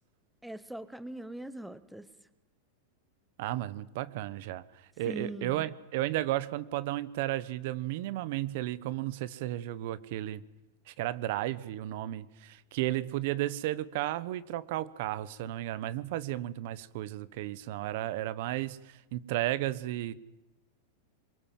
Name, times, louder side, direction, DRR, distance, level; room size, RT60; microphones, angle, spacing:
voice 1, 0.4-2.1 5.1-5.7, right 1 dB, ahead, 15 dB, 1.0 m, -41 dB
voice 2, 3.4-4.6 5.0-10.4 10.9-20.1, right 14 dB, 60° right, 18 dB, 1.1 m, -33 dB
23.5 x 21.5 x 7.6 m, 0.99 s
supercardioid pair, 140°, 0 cm